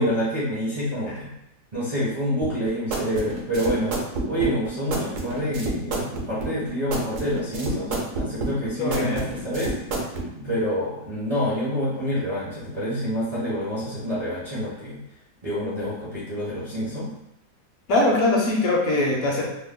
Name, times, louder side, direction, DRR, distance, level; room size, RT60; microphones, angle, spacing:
voice 1, 0.0-1.3 1.7-15.0 15.4-17.1, equal, 40° right, -9 dB, 0.5 m, -27 dB
sound 1, 2.4-10.3, right 2 dB, 65° right, 0.9 m, -29 dB
voice 2, 8.8-9.3 17.9-19.5, left 2 dB, 70° left, -1 dB, 1.0 m, -22 dB
3.0 x 2.0 x 3.4 m, 0.84 s
omnidirectional pair, 1.7 m